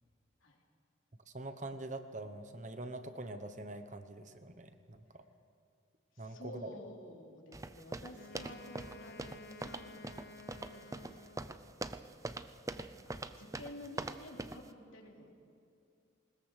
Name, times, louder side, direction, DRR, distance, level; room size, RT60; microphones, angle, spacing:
voice 1, 1.3-5.2 6.2-6.7, right 2 dB, 40° right, 9 dB, 1.1 m, -44 dB
voice 2, 6.1-11.6 12.7-15.3, left 1 dB, 90° left, -1 dB, 3.6 m, -52 dB
sound 1, 7.5-14.7, right 2 dB, 15° right, 0.5 m, -43 dB
Wind instrument woodwind instrument, 8.1-11.8, left 3 dB, 50° left, 0.6 m, -53 dB
20.5 x 20.0 x 6.6 m, 2.5 s
head